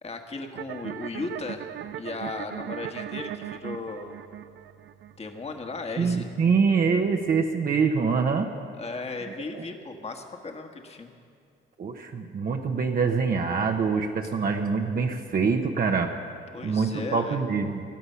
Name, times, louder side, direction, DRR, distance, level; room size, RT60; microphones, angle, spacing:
voice 1, 0.0-1.7 1.9-4.1 5.2-6.3 8.8-11.2 16.5-17.4, left 3 dB, 30° left, 4 dB, 1.6 m, -36 dB
sound 1, 0.5-7.5, right 11 dB, 65° right, 0.6 m, -39 dB
voice 2, 6.0-8.5 9.3-9.6 11.8-16.1 16.6-17.8, right 5 dB, 45° right, 2 dB, 1.0 m, -25 dB
19.5 x 12.0 x 5.7 m, 2.3 s
cardioid pair, 90°, 20 cm